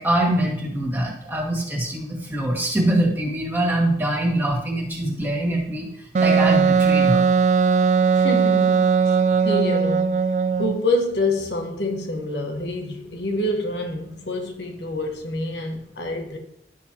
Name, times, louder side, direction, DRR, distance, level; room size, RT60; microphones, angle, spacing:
voice 1, 0.0-5.9 6.2-7.3, right 1 dB, 10° right, 1.9 m, -23 dB
Wind instrument woodwind instrument, 6.1-10.8, right 5 dB, 40° right, 0.3 m, -18 dB
voice 2, 8.1-10.2 10.6-16.4, left 1 dB, 75° left, 1.3 m, -27 dB
11.5 x 6.3 x 2.9 m
head